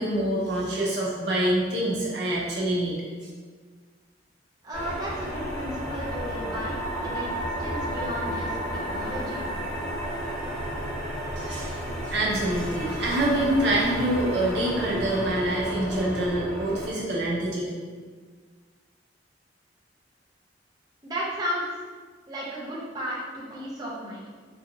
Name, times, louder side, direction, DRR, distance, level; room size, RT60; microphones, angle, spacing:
voice 1, 0.0-3.0 11.4-11.8 12.1-17.7, right 1 dB, 65° right, -4 dB, 0.8 m, -26 dB
voice 2, 4.6-6.8 7.0-8.6 8.9-9.6 21.0-21.8 22.3-24.2, equal, 20° right, -7 dB, 0.6 m, -34 dB
sound 1, 4.7-16.9, equal, 5° left, 1.0 m, -32 dB
3.8 x 2.7 x 2.7 m, 1.5 s
head